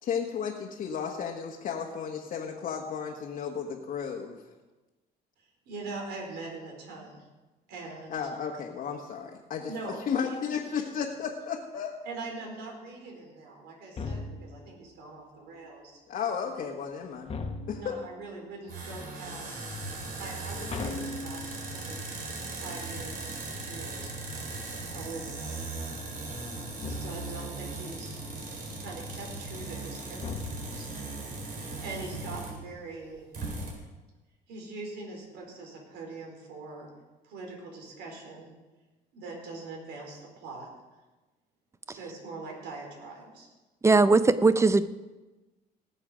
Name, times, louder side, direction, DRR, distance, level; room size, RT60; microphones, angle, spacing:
voice 1, 0.0-4.4 8.1-11.9 16.1-17.3 17.7-18.0, left 7 dB, 55° left, -1 dB, 1.4 m, -33 dB
voice 2, 5.4-7.3 7.7-8.2 9.7-10.6 10.8-10.9 12.0-16.0 17.7-19.8 20.2-22.0 22.6-24.1 24.9-25.4 26.8-28.2 28.8-30.9 31.8-33.2 34.5-36.9 37.2-38.5 39.1-40.7 41.9-43.5, right 3 dB, 80° right, 0 dB, 4.5 m, -42 dB
sound 1, 14.0-14.7 17.3-18.1 20.7-21.9 26.8-27.5 30.2-31.0, left 3 dB, 35° left, 1.3 m, -37 dB
sound 2, 18.7-32.7 33.0-33.1 33.3-33.7, right 2 dB, 60° right, 4.2 m, -38 dB
voice 3, 43.8-44.9, right 3 dB, 15° right, 13 dB, 0.6 m, -20 dB
18.5 x 7.1 x 5.1 m, 1.2 s
cardioid pair, 110°, 17 cm